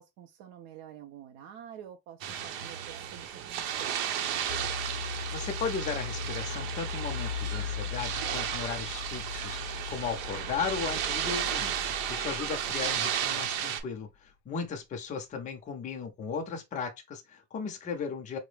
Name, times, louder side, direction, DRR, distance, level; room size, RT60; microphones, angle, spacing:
voice 1, 0.0-4.4, right 10 dB, 45° right, 0.4 m, -48 dB
sound 1, 2.2-13.8, right 9 dB, 70° right, 0.8 m, -34 dB
sound 2, 4.5-13.6, left 6 dB, 90° left, 0.6 m, -39 dB
voice 2, 5.3-11.8 12.1-18.4, left 6 dB, 20° left, 0.4 m, -36 dB
4.6 x 2.0 x 3.1 m
cardioid pair, 170°, 43 cm